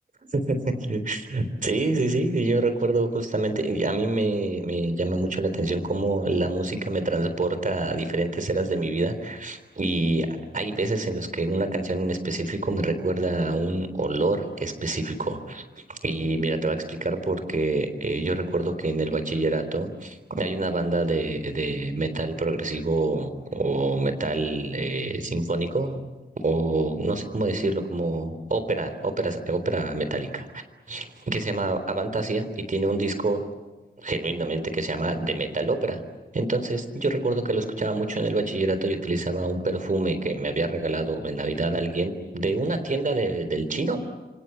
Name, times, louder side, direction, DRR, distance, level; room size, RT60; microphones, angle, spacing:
voice 1, 0.9-26.0 26.4-30.6 30.9-33.4 34.0-36.0 36.3-44.1, right 2 dB, 50° right, 9 dB, 3.8 m, -26 dB
27.5 x 25.5 x 8.1 m, 1.2 s
wide cardioid pair, 85°, 18 cm